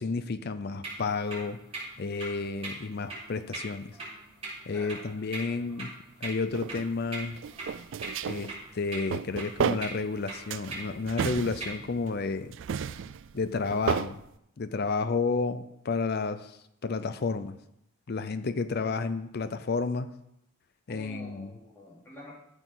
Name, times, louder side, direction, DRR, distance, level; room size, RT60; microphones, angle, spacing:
voice 1, 0.0-1.6 2.0-4.0 4.7-5.9 6.2-7.4 8.3-12.6 13.3-14.2 14.6-17.5 18.1-20.1 20.9-21.5, left 4 dB, 45° left, 12 dB, 0.4 m, -31 dB
sound 1, 0.8-11.8, right 2 dB, 25° right, 3.8 m, -42 dB
voice 2, 4.7-5.6 20.9-22.4, left 1 dB, 10° left, -7 dB, 2.9 m, -48 dB
sound 2, 6.5-6.9 7.4-8.5 8.9-10.2 10.5-12.1 12.5-14.1, right 7 dB, 55° right, 0.3 m, -32 dB
13.5 x 6.1 x 3.9 m, 0.78 s
head